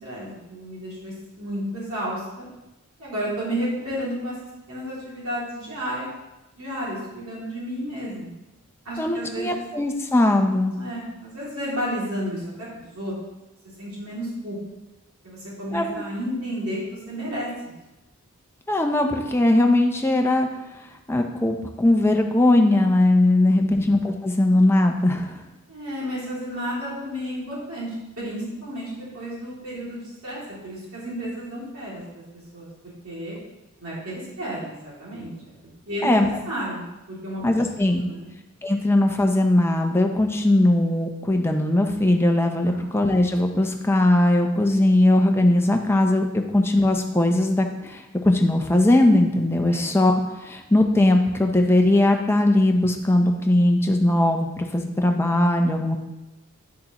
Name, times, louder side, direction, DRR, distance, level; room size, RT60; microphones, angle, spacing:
voice 1, 0.0-2.5 3.0-4.3 4.7-6.1 6.6-8.3 8.8-9.6 10.7-13.1 13.8-14.6 15.2-17.8 23.6-23.9 25.7-32.2 32.5-32.7 33.0-33.4 33.8-35.5 35.9-36.1 36.4-36.8 37.1-37.4 37.8-38.3 42.7-42.9 49.7-49.9, equal, 80° right, -7 dB, 2.6 m, -32 dB
voice 2, 9.0-10.7 15.7-16.0 18.7-20.5 21.1-25.4 36.0-36.3 37.4-38.1 38.6-56.0, left 1 dB, 10° left, 3 dB, 0.6 m, -20 dB
9.5 x 6.4 x 2.9 m, 1.0 s
head